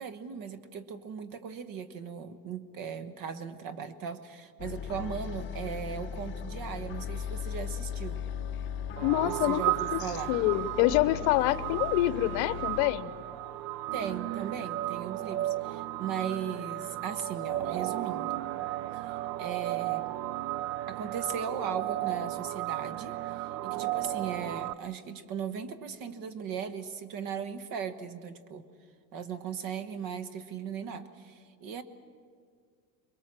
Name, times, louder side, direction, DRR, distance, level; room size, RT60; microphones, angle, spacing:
voice 1, 0.0-8.2 9.2-10.4 13.9-18.4 19.1-20.1 20.9-28.6 29.1-31.8, right 7 dB, 45° right, 12 dB, 1.3 m, -38 dB
sound 1, 4.6-12.9, left 8 dB, 25° left, 0.8 m, -38 dB
voice 2, 9.0-10.0 10.3-13.1, left 15 dB, 55° left, 15 dB, 0.9 m, -26 dB
sound 2, 9.0-24.7, right 15 dB, 90° right, 0.8 m, -34 dB
25.5 x 22.0 x 7.6 m, 2.1 s
supercardioid pair, 150°, 49 cm